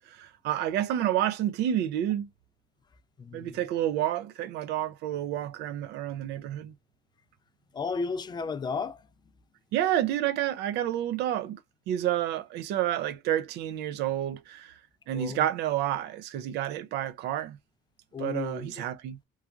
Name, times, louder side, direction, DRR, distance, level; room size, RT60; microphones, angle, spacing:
voice 1, 0.1-2.3 3.3-6.7 9.7-11.6 11.9-14.8 15.1-17.6 18.2-19.2, right 12 dB, 80° right, 0.4 m, -29 dB
voice 2, 3.2-3.6 7.7-9.1 15.1-15.4 18.1-18.7, left 5 dB, 25° left, 0.4 m, -33 dB
3.0 x 2.3 x 2.3 m
cardioid pair, 110°, 17 cm